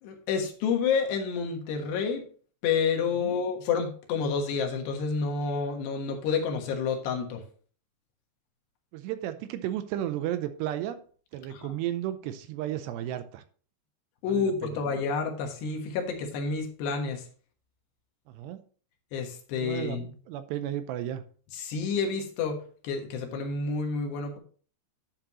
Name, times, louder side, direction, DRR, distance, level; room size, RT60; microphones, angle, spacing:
voice 1, 0.0-2.3 2.6-7.4 11.5-11.8 14.2-17.2 19.1-20.1 21.5-24.4, left 5 dB, 75° left, 3 dB, 3.5 m, -29 dB
voice 2, 8.9-11.0 11.3-13.4 14.3-14.8 18.3-18.6 19.6-20.0 20.3-21.2, right 12 dB, 80° right, 10 dB, 2.7 m, -33 dB
11.5 x 7.5 x 3.0 m, 0.43 s
omnidirectional pair, 5.1 m